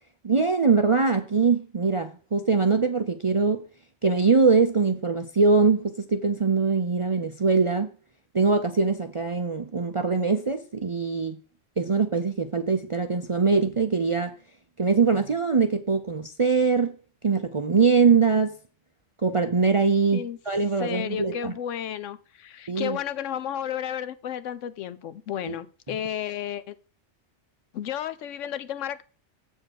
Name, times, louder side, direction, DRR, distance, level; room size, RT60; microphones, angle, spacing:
voice 1, 0.2-3.6 4.0-7.9 8.3-11.4 11.8-14.3 14.8-16.9 17.2-18.6 19.2-21.5 22.7-23.0 25.5-25.6, right 4 dB, 45° right, 0.4 m, -22 dB
voice 2, 20.8-26.7 27.7-29.0, left 10 dB, 80° left, 1.0 m, -32 dB
7.7 x 4.6 x 6.3 m
omnidirectional pair, 1.3 m